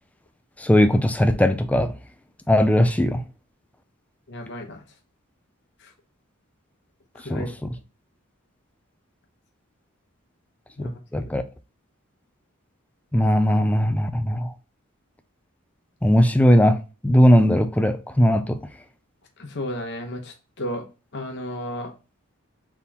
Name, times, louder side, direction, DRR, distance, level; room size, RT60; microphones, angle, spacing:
voice 1, 0.6-1.9 2.5-3.2 7.3-7.7 11.1-11.4 13.1-14.5 16.0-16.8 17.0-18.6, equal, 5° left, 0.3 m, -18 dB
voice 2, 4.3-4.8 5.8-5.9 7.2-7.5 10.8-11.2 19.4-20.8 21.1-21.9, left 1 dB, 55° left, 0.9 m, -33 dB
4.2 x 3.6 x 2.8 m
head